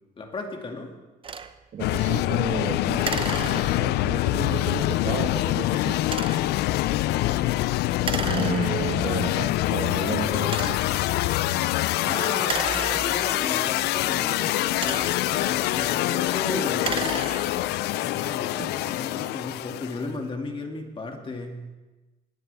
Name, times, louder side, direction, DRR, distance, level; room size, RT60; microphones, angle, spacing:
voice 1, 0.2-0.9 7.1-7.4 11.6-17.1 18.0-21.7, left 3 dB, 30° left, 3 dB, 2.3 m, -35 dB
sound 1, 1.2-1.5 3.0-4.1 6.0-6.6 8.0-9.0 9.7-9.8 10.4-11.0 12.4-13.5 14.5-15.4 16.7-17.8, right 6 dB, 30° right, 0.7 m, -33 dB
voice 2, 1.7-6.0 8.2-10.8 18.3-18.4, right 7 dB, 50° right, 4 dB, 1.2 m, -33 dB
sound 2, 1.8-20.1, left 16 dB, 80° left, 0.4 m, -25 dB
20.5 x 12.5 x 3.5 m, 1.2 s
cardioid pair, 110°, 17 cm